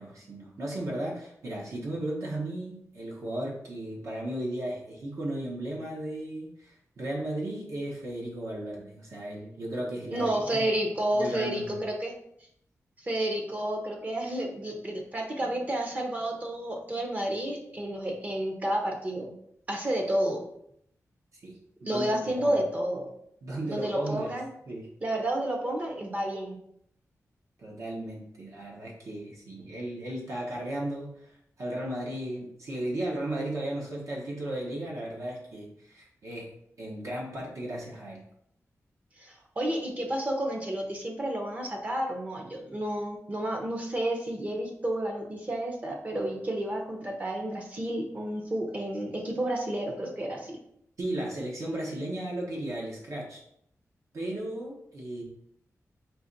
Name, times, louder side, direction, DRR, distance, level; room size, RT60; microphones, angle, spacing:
voice 1, 0.0-10.7 11.2-11.8 21.3-22.6 23.4-24.3 24.7-24.9 27.6-36.5 36.8-38.2 51.0-53.4 54.1-55.2, right 1 dB, 65° right, -3 dB, 1.0 m, -35 dB
voice 2, 10.1-12.1 13.0-19.3 19.7-20.4 21.8-23.1 23.7-24.5 25.0-26.6 39.2-50.6, right 1 dB, 25° right, 2 dB, 0.7 m, -31 dB
3.9 x 2.9 x 4.0 m, 0.72 s
wide cardioid pair, 170°, 6 cm